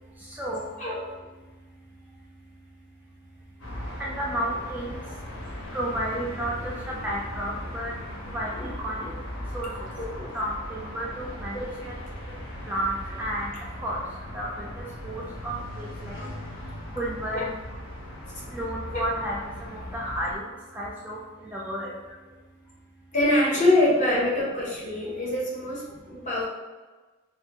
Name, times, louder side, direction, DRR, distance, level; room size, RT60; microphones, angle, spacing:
voice 1, 0.8-1.1 9.0-9.1 10.0-10.3 11.5-11.9 12.2-12.3 16.2-16.3 17.3-17.4 18.9-19.0 23.1-26.5, left 1 dB, 40° left, -5 dB, 0.8 m, -25 dB
sound 1, 3.6-20.3, left 1 dB, 75° left, 0.8 m, -38 dB
voice 2, 4.0-5.0 5.7-7.9 8.3-9.1 9.5-9.7 10.3-11.9 12.7-13.5 13.8-14.0 14.3-16.2 16.9-17.4 18.5-19.4 19.7-20.4 20.7-21.2 21.4-21.9, right 1 dB, 10° right, -5 dB, 0.3 m, -32 dB
3.2 x 2.2 x 2.8 m, 1.3 s
head